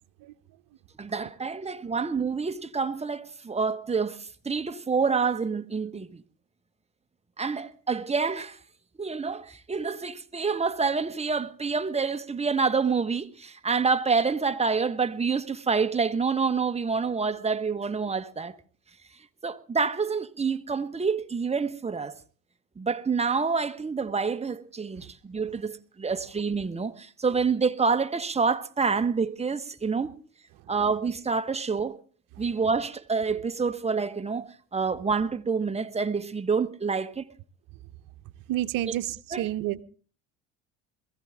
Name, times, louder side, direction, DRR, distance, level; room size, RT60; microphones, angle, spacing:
voice 1, 1.0-6.2 7.4-8.6 9.0-18.6 19.4-22.1 22.8-30.1 30.7-32.0 32.4-37.3 39.3-39.4, right 5 dB, 15° right, 1.3 m, -27 dB
voice 2, 38.5-39.8, right 14 dB, 65° right, 1.0 m, -29 dB
22.0 x 15.5 x 3.6 m
supercardioid pair, 85°, 36 cm